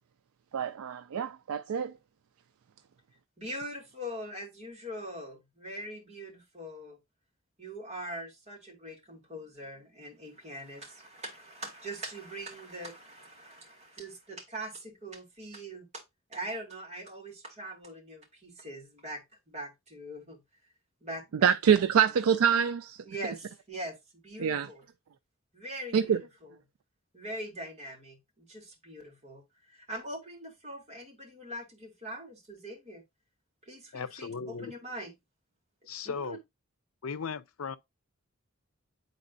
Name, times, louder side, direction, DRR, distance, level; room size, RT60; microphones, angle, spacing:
voice 1, 0.5-1.9 21.4-23.0 24.4-24.7 25.9-26.2, right 7 dB, 90° right, 0.4 m, -25 dB
voice 2, 3.4-7.0 7.6-16.0 16.3-20.4 21.0-21.5 22.0-22.1 23.0-24.8 25.5-26.5 27.1-29.4 29.7-33.0 33.6-35.1 36.0-36.4, right 1 dB, 35° right, 2.4 m, -42 dB
voice 3, 33.9-34.7 35.9-36.4 37.0-37.8, left 5 dB, 80° left, 0.6 m, -37 dB
9.6 x 4.1 x 2.6 m
head